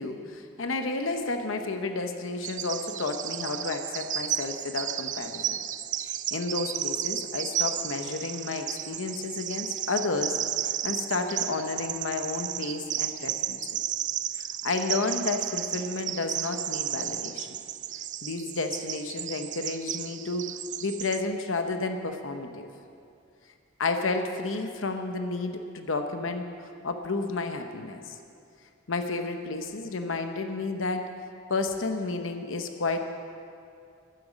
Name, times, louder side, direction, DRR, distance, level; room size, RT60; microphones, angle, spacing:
voice 1, 0.0-5.6 6.0-13.8 14.3-17.6 18.2-20.5 20.8-22.7 23.8-28.2 28.9-31.1 31.5-33.0, left 3 dB, 80° left, 6 dB, 0.8 m, -31 dB
Bird vocalization bird call bird song, 2.4-21.2, right 11 dB, 40° right, 0.4 m, -33 dB
12.0 x 10.0 x 7.3 m, 2.5 s
head